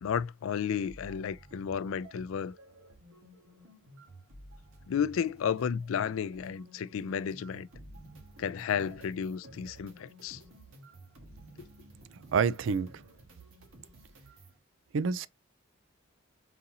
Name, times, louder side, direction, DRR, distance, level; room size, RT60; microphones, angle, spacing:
voice 1, 0.0-2.5 4.9-7.7 8.4-10.4 11.6-11.7, left 7 dB, 80° left, 0.3 m, -32 dB
sound 1, 0.8-14.6, right 1 dB, 85° right, 1.5 m, -54 dB
voice 2, 12.3-12.9 14.9-15.3, right 5 dB, 65° right, 0.4 m, -27 dB
4.0 x 3.9 x 2.7 m
head